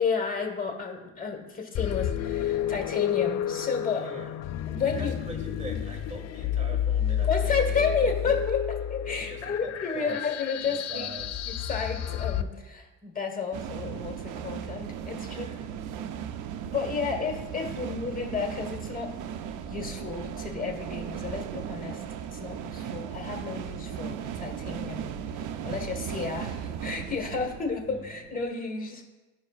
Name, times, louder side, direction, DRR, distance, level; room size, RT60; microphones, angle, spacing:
voice 1, 0.0-4.0 4.7-5.2 7.3-11.1 11.4-15.5 16.7-19.1 19.4-22.0 22.3-29.0, left 5 dB, 30° left, 2 dB, 1.4 m, -32 dB
sound 1, 1.7-12.4, left 10 dB, 60° left, 0.5 m, -30 dB
voice 2, 4.0-4.3 4.8-7.9 8.2-8.4 9.0-10.2 10.7-11.5 15.2-15.8 17.0-18.2 27.9-28.2, right 1 dB, 20° right, 1 dB, 1.7 m, -43 dB
sound 2, 13.5-28.3, right 8 dB, 85° right, 0.5 m, -37 dB
13.5 x 5.3 x 2.4 m, 1.2 s
cardioid pair, 90°, 30 cm